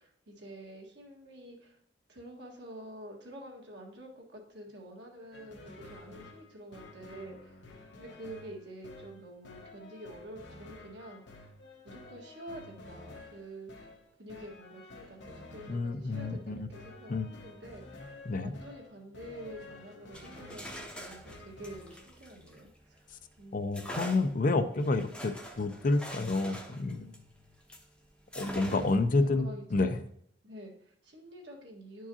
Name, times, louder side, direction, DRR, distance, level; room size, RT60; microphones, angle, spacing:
voice 1, 0.0-1.8 2.1-7.6 8.0-11.5 11.8-13.7 14.2-18.1 18.4-23.0 23.4-24.1 28.5-28.9 29.2-30.0 30.4-32.1, right 1 dB, 70° right, -1 dB, 1.6 m, -48 dB
sound 1, 5.3-22.1, left 2 dB, 75° left, 1.0 m, -51 dB
voice 2, 15.7-16.7 17.1-17.3 18.3-18.5 23.5-27.1 28.3-30.0, left 3 dB, 45° left, 10 dB, 0.5 m, -29 dB
sound 2, 20.0-23.1 23.7-27.9 28.3-29.1, equal, 5° left, 0.7 m, -45 dB
11.0 x 4.6 x 2.8 m, 0.66 s
head